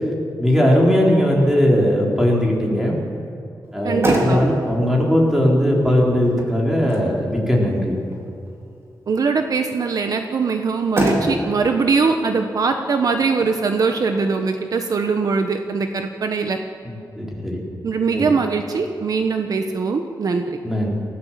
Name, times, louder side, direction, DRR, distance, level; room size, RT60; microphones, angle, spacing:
voice 1, 0.4-3.0 3.7-7.9 16.9-17.6 18.1-18.3 20.6-20.9, equal, 5° right, -2 dB, 4.2 m, -18 dB
Motor vehicle (road), 3.6-16.6, right 1 dB, 35° right, 3.8 m, -29 dB
voice 2, 3.8-4.4 9.1-16.6 17.8-20.4, right 4 dB, 55° right, 5 dB, 1.1 m, -21 dB
28.5 x 16.0 x 7.5 m, 2.4 s
wide cardioid pair, 165°, 7 cm